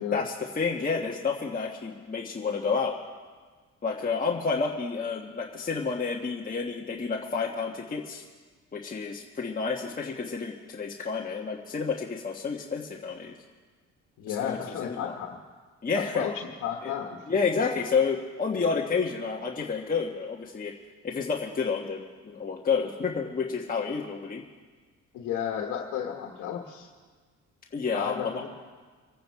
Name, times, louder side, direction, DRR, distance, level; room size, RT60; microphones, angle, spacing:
voice 1, 0.1-2.9 3.8-8.2 8.7-13.3 14.3-15.1 15.8-16.3 16.8-16.9 17.3-20.7 21.0-24.4 27.7-28.5, left 5 dB, 30° left, -1 dB, 1.3 m, -30 dB
voice 2, 14.2-15.4 15.9-16.3 16.6-17.2 25.1-26.9 27.9-28.5, left 9 dB, 85° left, 2 dB, 1.3 m, -33 dB
25.5 x 9.2 x 4.6 m, 1.5 s
cardioid pair, 90°, 30 cm